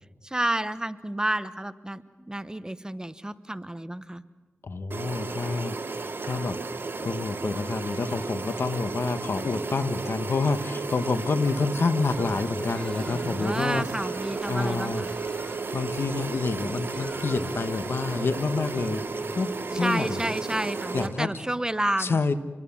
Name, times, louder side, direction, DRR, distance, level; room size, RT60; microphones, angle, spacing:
voice 1, 0.2-4.2 13.4-15.1 19.7-22.2, right 1 dB, 15° right, 12 dB, 1.1 m, -30 dB
voice 2, 4.6-6.6 7.0-13.8 14.5-15.0 15.7-20.3 20.9-21.3 22.0-22.3, left 4 dB, 70° left, 10 dB, 1.3 m, -28 dB
sound 1, 4.9-21.1, right 3 dB, 65° right, 2.8 m, -33 dB
Bird vocalization bird call bird song, 12.1-19.4, equal, 20° left, 5.5 m, -50 dB
27.5 x 22.0 x 7.3 m, 1.3 s
cardioid pair, 55°, 4 cm